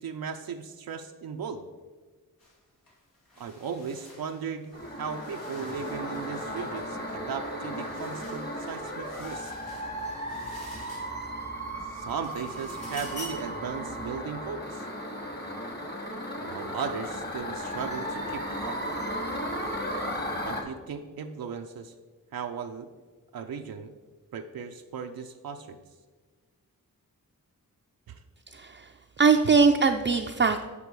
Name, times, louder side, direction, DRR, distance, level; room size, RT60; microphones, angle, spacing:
voice 1, 0.0-1.7 3.4-9.5 11.9-14.9 16.4-18.8 20.4-21.9 22.3-22.9 23.3-23.9 24.3-25.8 28.1-28.2, right 6 dB, 85° right, 4 dB, 0.5 m, -37 dB
sound 1, 2.4-2.6 2.9-11.5 11.9-13.6, left 1 dB, 85° left, 2.2 m, -49 dB
sound 2, 4.7-20.6, equal, 30° left, 1.3 m, -35 dB
voice 2, 28.5-28.9 29.2-30.7, right 5 dB, 35° right, 4 dB, 0.4 m, -21 dB
8.4 x 5.2 x 4.7 m, 1.4 s
wide cardioid pair, 75°, 35 cm